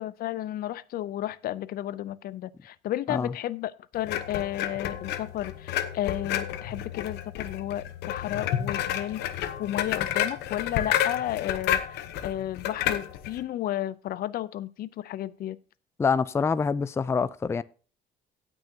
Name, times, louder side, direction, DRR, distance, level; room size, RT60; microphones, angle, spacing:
voice 1, 0.0-15.6, left 13 dB, 60° left, 0.5 m, -33 dB
sound 1, 4.1-13.4, left 10 dB, 85° left, 1.0 m, -30 dB
voice 2, 16.0-17.6, left 5 dB, 15° left, 0.4 m, -25 dB
17.5 x 6.3 x 2.8 m
cardioid pair, 110°, 17 cm